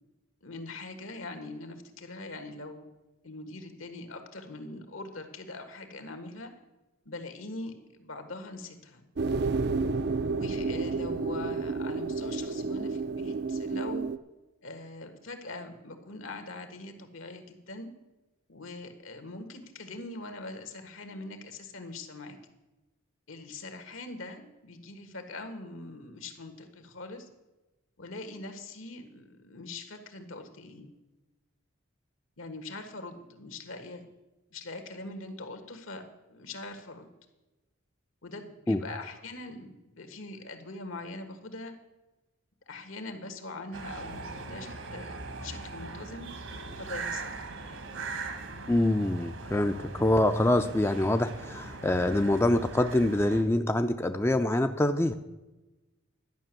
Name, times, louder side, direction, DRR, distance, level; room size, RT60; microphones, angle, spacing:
voice 1, 0.4-2.8 3.2-6.5 7.0-9.0 10.3-14.1 14.6-17.9 18.5-22.4 23.3-27.3 28.0-30.9 32.4-34.1 34.5-36.0 36.3-37.1 38.2-41.7 42.7-45.2 45.4-46.3 46.8-47.4, left 2 dB, 80° left, 7 dB, 1.6 m, -42 dB
sound 1, 9.2-14.2, right 3 dB, 50° right, 0.4 m, -30 dB
sound 2, 43.7-53.4, right 3 dB, 75° right, 1.5 m, -40 dB
voice 2, 48.7-55.1, left 1 dB, 10° left, 7 dB, 0.4 m, -25 dB
11.5 x 6.1 x 9.1 m, 1.1 s
head